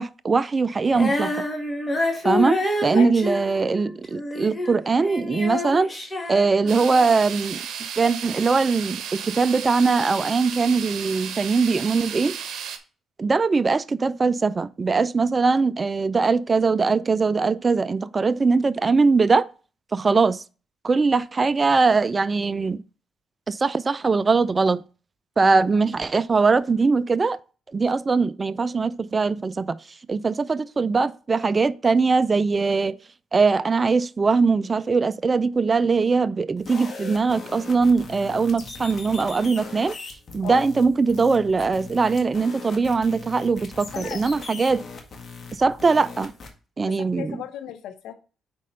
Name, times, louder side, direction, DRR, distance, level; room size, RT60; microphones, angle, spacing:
voice 1, 0.0-1.3 2.2-7.6 8.0-12.4 13.2-19.5 19.9-20.4 20.8-22.8 23.5-24.8 25.4-27.4 27.7-29.8 30.1-33.0 33.3-39.9 40.3-44.8 45.6-46.3 46.8-47.4, right 4 dB, 30° right, 0.4 m, -21 dB
Female singing, 0.9-7.1, left 1 dB, 15° left, 1.6 m, -28 dB
sound 1, 6.7-12.8, right 8 dB, 75° right, 0.9 m, -34 dB
sound 2, 36.6-46.5, left 4 dB, 45° left, 1.7 m, -40 dB
voice 2, 46.9-48.1, left 11 dB, 85° left, 0.6 m, -35 dB
5.2 x 4.2 x 5.4 m
cardioid pair, 90°, 0 cm